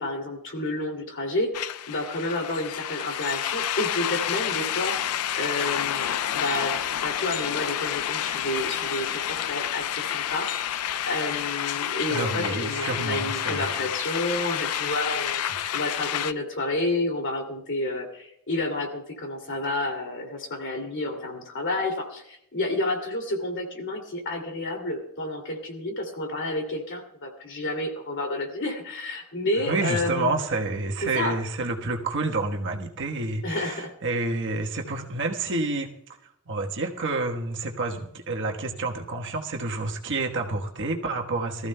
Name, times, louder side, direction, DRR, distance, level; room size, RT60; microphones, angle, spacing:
voice 1, 0.0-10.5 10.7-30.4 31.0-31.3 33.4-33.9, left 2 dB, 60° left, 3 dB, 2.6 m, -30 dB
sound 1, 1.5-16.3, left 10 dB, 85° left, 0.4 m, -29 dB
voice 2, 12.1-13.7 15.5-15.6 29.6-35.9 36.5-41.7, right 2 dB, 60° right, 2 dB, 1.3 m, -29 dB
23.0 x 14.0 x 2.2 m, 0.76 s
head